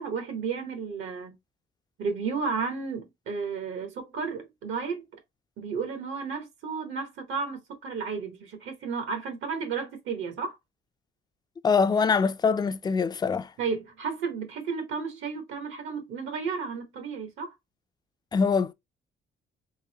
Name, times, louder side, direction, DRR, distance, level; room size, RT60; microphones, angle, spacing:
voice 1, 0.0-1.3 2.0-5.0 5.6-10.6 13.6-17.5, right 5 dB, 80° right, 1.1 m, -33 dB
voice 2, 11.6-13.5 18.3-18.7, left 5 dB, 20° left, 0.3 m, -23 dB
3.9 x 2.7 x 2.8 m
cardioid pair, 90°, 20 cm